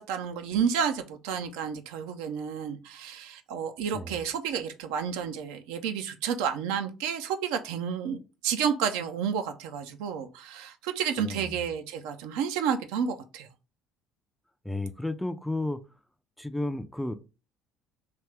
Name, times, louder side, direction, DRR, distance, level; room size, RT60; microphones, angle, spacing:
voice 1, 0.0-13.5, right 7 dB, 65° right, 0.4 m, -31 dB
voice 2, 11.2-11.6 14.6-15.8 16.4-17.1, left 2 dB, 5° left, 0.4 m, -32 dB
3.3 x 2.7 x 3.3 m
figure-of-eight pair, 60°, 0 cm